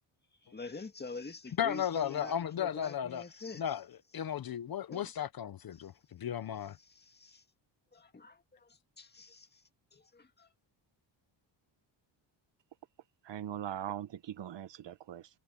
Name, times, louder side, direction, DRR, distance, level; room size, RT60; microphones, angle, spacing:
voice 1, 0.4-3.8 4.9-5.0 5.7-5.9 6.8-7.4 7.9-9.6 9.9-10.5, left 3 dB, 20° left, 2.0 m, -46 dB
voice 2, 1.6-3.2 3.6-3.8 4.1-6.8, left 9 dB, 50° left, 0.9 m, -35 dB
voice 3, 13.2-15.3, right 10 dB, 65° right, 1.5 m, -40 dB
cardioid pair, 140°, 47 cm